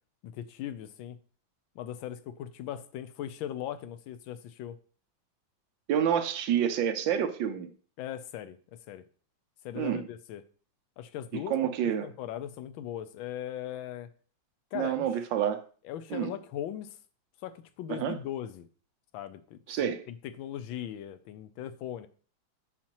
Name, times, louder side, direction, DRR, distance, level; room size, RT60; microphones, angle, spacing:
voice 1, 0.2-1.2 1.7-4.8 8.0-9.1 9.6-10.4 11.0-14.1 14.7-15.1 15.8-17.0 17.4-18.7 19.1-19.9 20.2-22.1, left 11 dB, 80° left, 1.4 m, -39 dB
voice 2, 5.9-7.7 9.8-10.0 11.3-12.1 14.7-15.6 16.1-16.3 17.9-18.2 19.7-20.0, right 9 dB, 75° right, 1.4 m, -28 dB
8.6 x 5.8 x 2.9 m
omnidirectional pair, 2.2 m